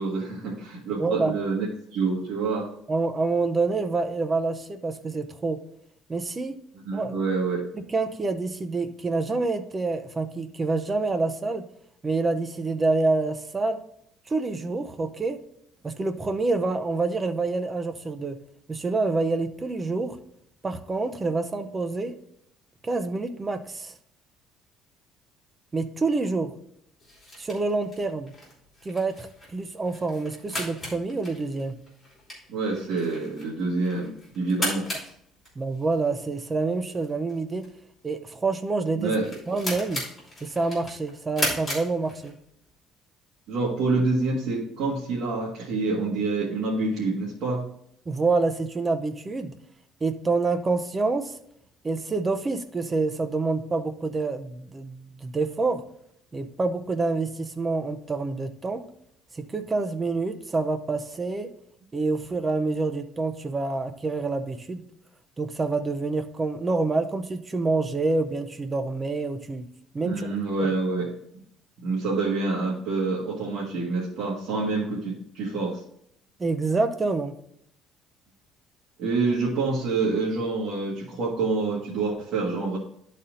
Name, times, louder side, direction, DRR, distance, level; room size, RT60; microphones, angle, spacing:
voice 1, 0.0-2.7 6.7-7.6 32.5-34.9 38.9-39.3 43.5-47.6 70.0-71.1 71.8-75.8 79.0-82.8, right 3 dB, 60° right, -5 dB, 1.6 m, -27 dB
voice 2, 1.0-1.3 2.9-5.6 6.1-6.6 6.9-7.1 7.7-11.6 12.0-13.8 14.3-15.4 15.8-18.4 18.7-20.2 20.6-22.1 22.8-23.9 25.7-26.5 27.4-28.3 28.8-31.7 35.6-37.6 38.0-39.1 39.5-40.0 40.4-42.3 48.1-49.5 50.0-51.3 51.8-55.8 56.3-58.8 59.3-61.5 61.9-64.8 65.4-69.6 69.9-70.3 70.6-70.7 76.4-77.3, right 3 dB, 15° right, 8 dB, 0.6 m, -27 dB
sound 1, 27.0-42.6, left 1 dB, 15° left, 3.1 m, -37 dB
11.0 x 4.2 x 3.8 m, 0.70 s
cardioid pair, 170°, 0 cm